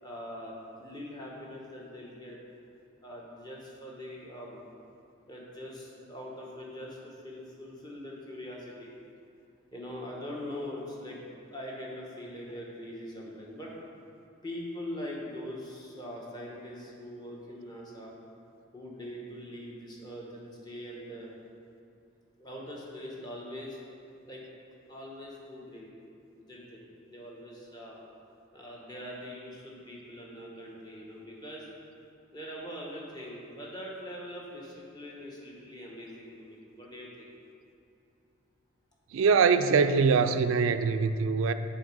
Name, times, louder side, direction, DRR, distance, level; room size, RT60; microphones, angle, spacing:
voice 1, 0.0-2.4 3.0-4.6 5.3-8.9 9.7-11.2 11.5-13.7 14.4-18.1 18.7-21.3 22.4-23.8 24.2-24.4 24.9-25.9 26.4-28.0 28.5-31.7 32.3-37.3, left 1 dB, 20° left, -3 dB, 1.1 m, -42 dB
voice 2, 39.1-41.5, right 5 dB, 75° right, 10 dB, 0.4 m, -23 dB
7.7 x 4.2 x 5.3 m, 2.6 s
head